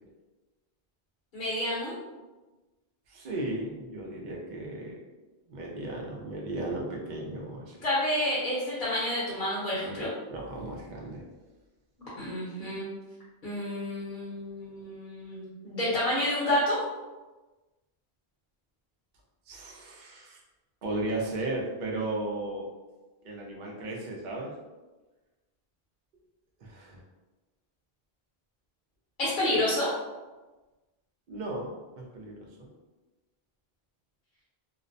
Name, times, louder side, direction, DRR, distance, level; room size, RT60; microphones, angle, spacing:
voice 1, 1.3-1.9 7.8-10.1 12.1-12.9 13.4-16.8 29.2-29.9, left 1 dB, 60° left, -8 dB, 0.9 m, -29 dB
voice 2, 3.1-5.0 5.5-7.8 10.3-11.2 19.5-20.4 20.8-22.7 23.2-24.5 26.6-27.0 31.3-32.7, right 2 dB, 55° right, -2 dB, 0.6 m, -35 dB
2.4 x 2.0 x 2.5 m, 1.2 s
omnidirectional pair, 1.0 m